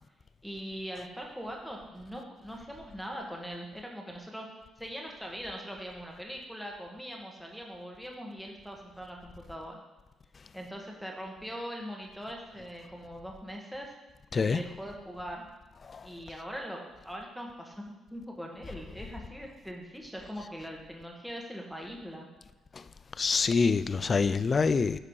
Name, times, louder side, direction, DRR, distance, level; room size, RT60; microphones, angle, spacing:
voice 1, 0.4-4.5 4.8-9.8 10.5-13.9 14.4-15.5 16.0-22.3, equal, ahead, 1.6 m, -41 dB
voice 2, 23.2-25.0, left 5 dB, 40° left, 0.4 m, -26 dB
10.0 x 4.9 x 4.8 m
cardioid pair, 90°, 0 cm